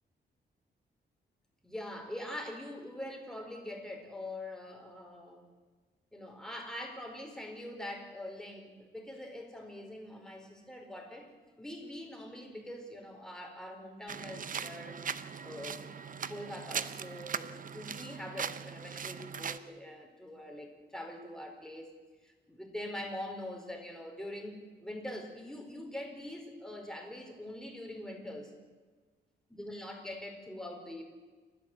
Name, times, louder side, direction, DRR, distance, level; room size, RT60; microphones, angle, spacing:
voice 1, 1.6-5.5 6.1-15.0 15.4-15.8 16.3-21.9 22.2-28.5 29.5-31.0, left 1 dB, 5° left, 2 dB, 4.8 m, -43 dB
sound 1, 14.1-19.6, right 7 dB, 45° right, 0.8 m, -40 dB
29.0 x 13.0 x 8.1 m, 1.4 s
cardioid pair, 115°, 19 cm